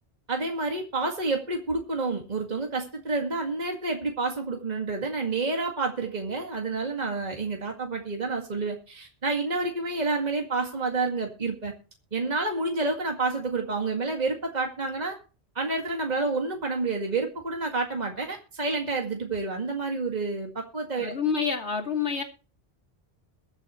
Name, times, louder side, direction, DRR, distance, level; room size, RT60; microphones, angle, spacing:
voice 1, 0.3-11.7 12.1-15.2 15.6-21.2, right 3 dB, 40° right, 2 dB, 2.2 m, -29 dB
voice 2, 21.0-22.2, left 6 dB, 85° left, 4 dB, 2.8 m, -27 dB
22.0 x 8.2 x 3.1 m, 0.34 s
omnidirectional pair, 1.1 m